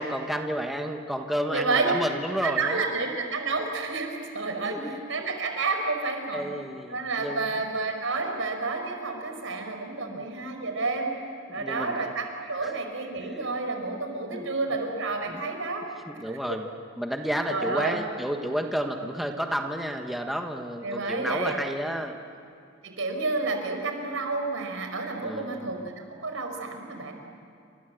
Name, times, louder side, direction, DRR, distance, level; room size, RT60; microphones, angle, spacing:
voice 1, 0.0-2.8 4.6-5.0 6.3-7.5 10.0-10.3 11.5-12.1 12.6-12.7 13.2-13.5 14.3-14.5 15.3-15.4 16.1-16.7 17.0-22.2 25.2-25.7 27.0-27.1, equal, ahead, 3 dB, 1.4 m, -31 dB
voice 2, 1.5-1.9 2.4-6.4 6.9-11.1 11.5-15.8 16.3-16.6 17.5-18.0 20.8-21.5 22.8-27.1, right 3 dB, 75° right, 4 dB, 5.0 m, -30 dB
29.0 x 26.0 x 7.9 m, 2.4 s
head